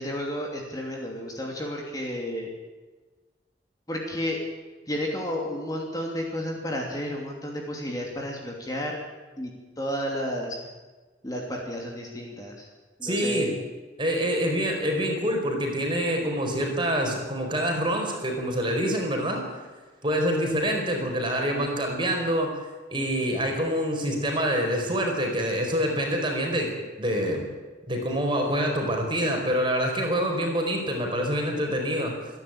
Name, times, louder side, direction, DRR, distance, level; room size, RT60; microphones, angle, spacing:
voice 1, 0.0-2.5 3.9-4.4 4.9-9.0 9.4-9.5 9.8-10.6 11.2-12.7 13.0-13.6, equal, 20° left, 0 dB, 2.8 m, -32 dB
voice 2, 13.0-13.5 14.0-19.4 20.0-22.7 22.9-26.7 27.0-27.5 27.9-32.1, equal, 25° right, 2 dB, 4.6 m, -26 dB
27.0 x 11.0 x 8.9 m, 1.3 s
head